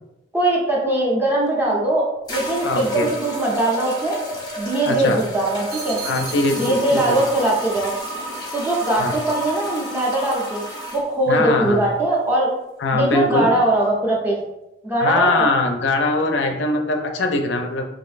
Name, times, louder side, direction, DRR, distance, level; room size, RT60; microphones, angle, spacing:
voice 1, 0.3-4.2 4.6-6.0 6.6-7.9 8.5-10.6 10.9-12.5 12.9-14.4 14.8-15.5, right 1 dB, 10° right, -4 dB, 0.6 m, -21 dB
sound 1, 1.5-1.6 2.3-11.0, equal, 20° left, 0.7 m, -31 dB
voice 2, 2.6-3.1 4.9-5.2 6.0-7.2 9.0-9.2 11.3-11.8 12.8-13.5 15.0-17.9, left 2 dB, 65° left, 4 dB, 0.4 m, -21 dB
sound 2, 5.5-7.5 7.8-8.1, right 6 dB, 50° right, 0.6 m, -37 dB
3.1 x 2.5 x 2.4 m, 0.91 s
head